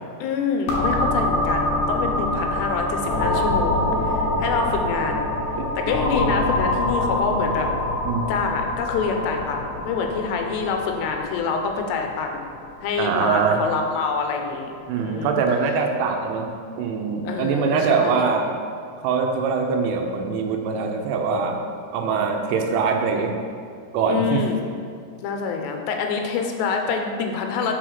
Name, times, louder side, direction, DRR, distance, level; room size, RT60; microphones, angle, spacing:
voice 1, 0.2-5.3 5.8-7.7 8.3-12.4 12.8-15.4 17.3-18.3 24.1-24.6 25.2-27.7, left 5 dB, 85° left, 3 dB, 2.9 m, -26 dB
sound 1, 0.7-14.2, left 1 dB, 60° left, 2.0 m, -25 dB
voice 2, 13.0-13.6 14.9-16.5 16.8-18.5 19.0-21.6 21.9-23.3 23.9-24.4, right 5 dB, 85° right, 3 dB, 2.8 m, -23 dB
6.2 x 5.5 x 5.9 m, 2.2 s
omnidirectional pair, 4.9 m